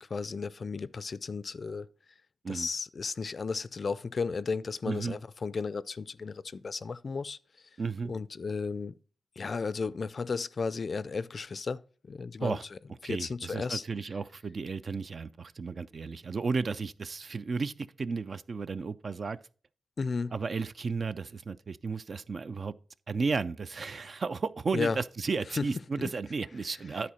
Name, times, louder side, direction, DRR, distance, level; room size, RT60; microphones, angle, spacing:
voice 1, 0.0-1.9 2.5-7.4 8.1-9.0 9.4-11.8 12.1-12.6 13.0-13.8 20.0-20.3 24.7-25.0 25.6-25.7 26.0-26.1, left 4 dB, 50° left, 0.4 m, -34 dB
voice 2, 7.8-8.1 12.4-12.6 13.0-19.4 20.3-22.7 23.1-27.1, right 4 dB, 50° right, 0.4 m, -33 dB
10.0 x 4.2 x 5.6 m
cardioid pair, 80°, 0 cm